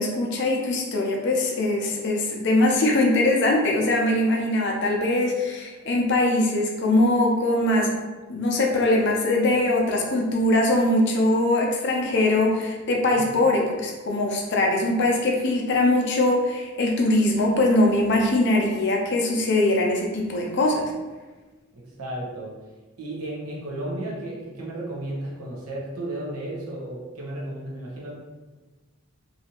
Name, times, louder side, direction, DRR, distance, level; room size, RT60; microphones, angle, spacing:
voice 1, 0.0-7.9 8.3-20.9, left 1 dB, 50° left, 0 dB, 0.5 m, -22 dB
voice 2, 21.7-22.6 23.0-28.1, right 1 dB, 80° right, -5 dB, 0.7 m, -33 dB
2.7 x 2.4 x 2.8 m, 1.3 s
head